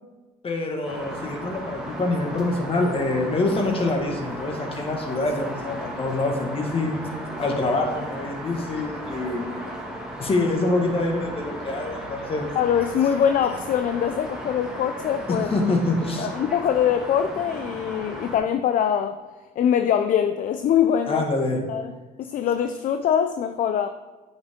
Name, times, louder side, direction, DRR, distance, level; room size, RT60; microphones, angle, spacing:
voice 1, 0.4-7.0 7.4-9.5 10.2-12.5 15.3-16.3 21.1-21.6, left 2 dB, 35° left, 2 dB, 1.7 m, -25 dB
sound 1, 0.8-18.4, right 1 dB, 5° right, 1.9 m, -36 dB
voice 2, 12.6-15.5 16.2-19.2 19.6-21.2 21.7-21.9 22.2-23.9, left 9 dB, 50° left, 8 dB, 0.5 m, -23 dB
8.9 x 6.3 x 3.7 m, 1.3 s
cardioid pair, 110°, 17 cm